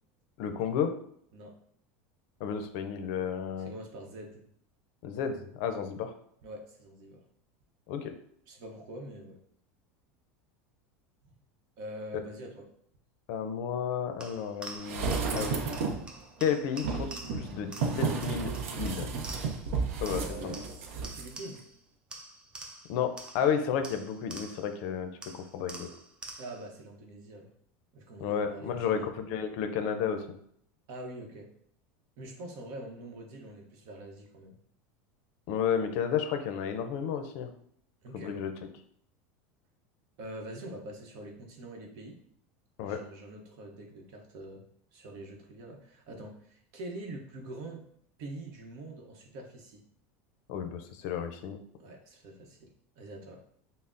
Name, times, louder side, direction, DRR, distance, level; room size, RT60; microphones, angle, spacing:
voice 1, 0.4-0.9 2.4-3.7 5.0-6.1 7.9-8.1 13.3-15.6 16.4-19.1 20.0-20.5 22.9-25.9 28.2-30.2 35.5-37.5 38.1-38.5 42.8-43.0 50.5-51.6, left 7 dB, 60° left, 7 dB, 0.5 m, -32 dB
voice 2, 3.6-4.4 6.4-7.2 8.5-9.4 11.8-12.7 20.2-20.7 21.0-21.6 26.4-27.5 27.9-29.1 30.9-31.5 32.2-34.6 38.0-38.4 40.2-42.2 42.8-44.6 44.9-47.8 48.2-49.8 51.8-53.4, right 1 dB, 55° right, 2 dB, 0.8 m, -44 dB
sound 1, 14.2-19.7 20.0-21.8 22.1-24.8 25.2-26.7, right 2 dB, 15° right, 0.4 m, -47 dB
sound 2, 14.8-16.1 16.8-21.3 21.6-21.7, right 5 dB, 85° right, 0.5 m, -32 dB
5.5 x 2.0 x 2.5 m, 0.66 s
supercardioid pair, 140°, 7 cm